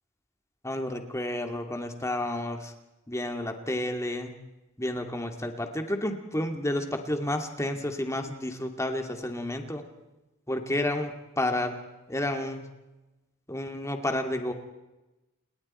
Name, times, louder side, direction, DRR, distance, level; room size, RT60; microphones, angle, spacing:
voice 1, 0.6-2.7 3.1-4.3 4.8-9.8 10.5-11.7 12.1-12.6 13.5-14.5, left 1 dB, 15° left, 5 dB, 2.4 m, -31 dB
29.5 x 21.0 x 4.4 m, 1.0 s
head